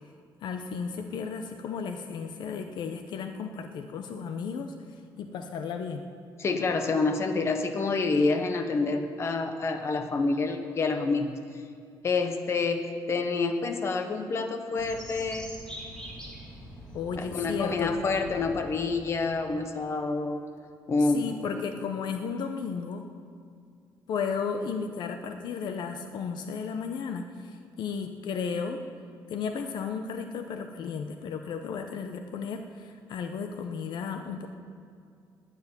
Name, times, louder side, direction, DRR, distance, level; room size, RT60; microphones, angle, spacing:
voice 1, 0.4-4.8 5.2-6.1 16.9-17.9 21.1-23.0 24.1-28.8 29.3-34.5, left 6 dB, 60° left, 7 dB, 0.8 m, -34 dB
voice 2, 6.4-11.3 12.0-15.5 17.2-20.4 20.9-21.6, left 3 dB, 30° left, 6 dB, 1.1 m, -28 dB
sound 1, 14.7-19.7, right 1 dB, 10° left, 2.7 m, -44 dB
11.5 x 9.5 x 9.7 m, 2.4 s
cardioid pair, 165°, 8 cm